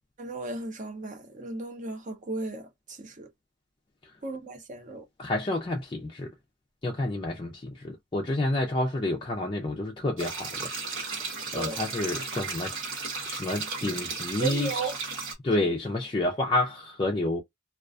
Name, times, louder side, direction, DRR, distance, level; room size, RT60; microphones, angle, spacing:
voice 1, 0.2-2.7 3.0-3.3 4.2-5.0 11.5-11.8 14.4-15.0, right 3 dB, 40° right, 0.7 m, -35 dB
voice 2, 5.2-6.3 6.8-11.1 11.5-12.7 13.3-14.9 15.4-17.4, left 2 dB, 25° left, 0.4 m, -29 dB
sound 1, 10.2-15.3, right 4 dB, 80° right, 1.0 m, -35 dB
2.3 x 2.2 x 2.4 m
head